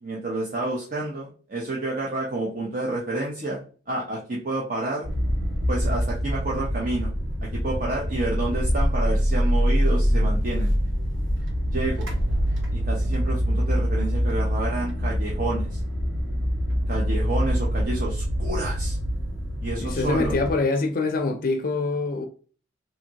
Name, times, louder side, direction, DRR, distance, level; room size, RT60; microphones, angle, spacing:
voice 1, 0.0-5.1 5.7-7.1 7.5-10.7 11.7-12.1 12.7-15.8 16.9-19.0 19.6-20.3, right 2 dB, 45° right, 0.7 m, -29 dB
sound 1, 5.0-20.5, equal, 85° right, 1.0 m, -25 dB
voice 2, 19.8-22.2, left 3 dB, 50° left, 0.4 m, -25 dB
3.5 x 2.7 x 2.8 m
head